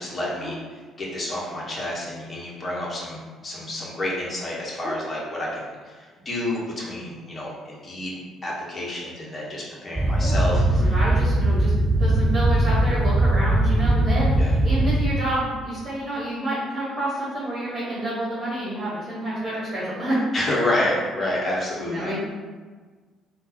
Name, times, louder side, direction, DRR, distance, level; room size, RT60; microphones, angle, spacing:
voice 1, 0.0-10.9 14.3-14.5 20.3-22.1, left 1 dB, 35° left, -5 dB, 1.1 m, -29 dB
sound 1, 10.0-15.2, right 1 dB, 15° right, 0.4 m, -20 dB
voice 2, 10.2-11.7 12.0-20.2 21.8-22.2, right 1 dB, 40° right, -9 dB, 1.4 m, -29 dB
3.6 x 2.5 x 2.9 m, 1.4 s
hypercardioid pair, 50°, 0 cm